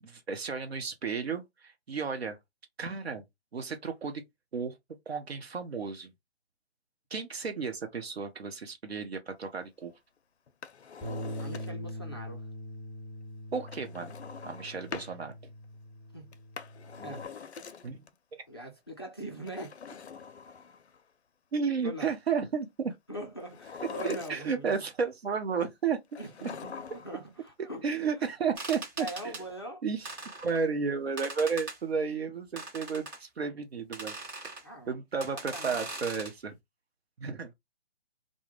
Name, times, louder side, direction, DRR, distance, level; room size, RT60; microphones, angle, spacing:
voice 1, 0.0-2.4 2.8-3.2 3.5-4.2 4.5-4.8 5.1-6.1 7.1-9.9 13.5-14.1 14.4-15.5 17.0-17.2 17.8-18.0 18.3-18.4 21.5-22.9 24.0-26.0 27.8-29.4 29.8-30.1 30.4-34.2 34.9-36.6 37.2-37.5, right 5 dB, 70° right, 0.8 m, -33 dB
Drawer open or close, 10.5-12.0 13.7-15.2 16.3-18.1 19.4-21.0 23.4-24.7 26.1-27.2 27.5-27.6, left 6 dB, 80° left, 0.5 m, -43 dB
Bass guitar, 11.0-17.3, left 1 dB, ahead, 1.1 m, -42 dB
voice 2, 11.4-12.4 16.1-16.3 17.0-17.2 18.5-19.8 21.8-22.1 23.1-24.8 26.2-28.1 29.0-29.8 34.6-34.9 35.3-35.8, right 1 dB, 25° left, 0.4 m, -42 dB
sound 1, 28.6-29.4 30.1-30.6 31.2-31.8 32.6-33.2 33.9-34.6 35.2-36.3, right 2 dB, 20° right, 0.8 m, -40 dB
2.2 x 2.0 x 3.1 m
figure-of-eight pair, 140°, 33 cm